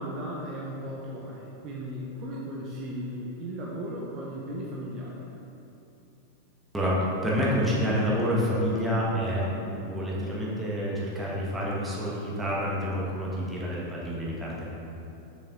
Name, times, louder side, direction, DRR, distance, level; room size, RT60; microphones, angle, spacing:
voice 1, 0.0-5.2, equal, 35° right, -4 dB, 0.9 m, -36 dB
voice 2, 6.7-14.7, equal, 5° right, -6 dB, 1.7 m, -28 dB
6.6 x 6.3 x 3.9 m, 2.9 s
figure-of-eight pair, 90°, 0 cm